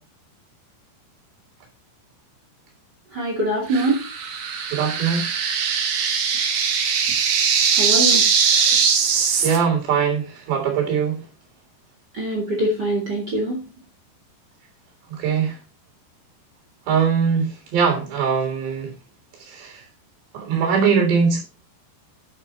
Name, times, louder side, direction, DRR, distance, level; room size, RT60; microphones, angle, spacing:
voice 1, 3.1-4.0 7.8-8.2 12.1-13.6, right 1 dB, 30° right, 0 dB, 2.3 m, -23 dB
sound 1, 3.7-9.6, right 6 dB, 60° right, 2.2 m, -20 dB
voice 2, 4.7-5.3 9.4-11.2 15.2-15.6 16.9-18.9 19.5-19.7 20.3-21.4, right 6 dB, 75° right, 3 dB, 5.6 m, -21 dB
10.0 x 7.1 x 4.4 m, 0.31 s
omnidirectional pair, 5.0 m